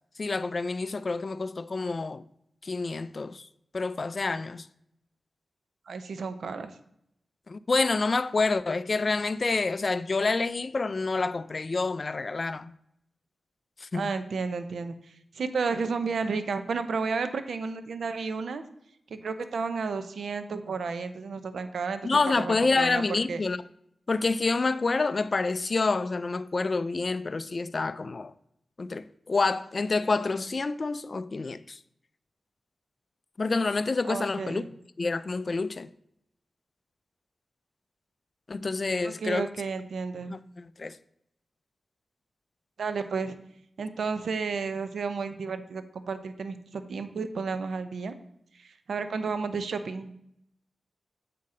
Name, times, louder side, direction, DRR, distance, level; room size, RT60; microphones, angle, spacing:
voice 1, 0.2-2.2 2.6-3.5 3.7-4.6 7.5-12.7 13.8-14.0 22.0-23.6 24.1-28.3 28.8-31.8 33.4-34.6 35.0-35.9 38.5-39.5 40.3-40.9, left 3 dB, 50° left, 0.3 m, -28 dB
voice 2, 5.9-6.8 13.9-18.6 19.1-23.4 34.0-34.7 39.0-40.4 42.8-43.4 43.8-48.1 48.5-50.1, right 4 dB, 80° right, 0.6 m, -32 dB
7.5 x 5.7 x 3.7 m
cardioid pair, 55°, 0 cm